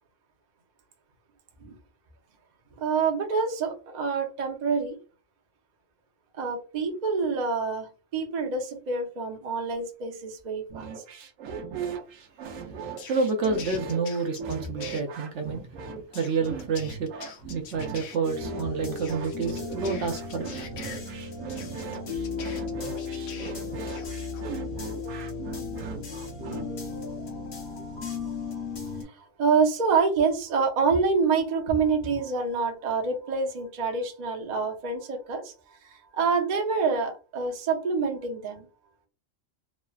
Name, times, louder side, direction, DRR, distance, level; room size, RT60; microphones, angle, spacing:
voice 1, 2.8-5.0 6.4-10.9 27.0-28.6 29.0-38.7, right 5 dB, 45° right, 0.6 m, -27 dB
sound 1, 10.7-26.7, right 6 dB, 90° right, 1.0 m, -38 dB
sound 2, 13.0-15.0 16.1-18.2 19.0-21.0 21.5-23.5 23.9-24.4, left 6 dB, 80° left, 1.0 m, -44 dB
voice 2, 13.1-15.6 16.1-17.1 17.5-20.5, right 4 dB, 70° right, 0.8 m, -28 dB
sound 3, 18.2-29.0, left 4 dB, 50° left, 0.8 m, -35 dB
3.1 x 2.1 x 2.3 m
omnidirectional pair, 1.3 m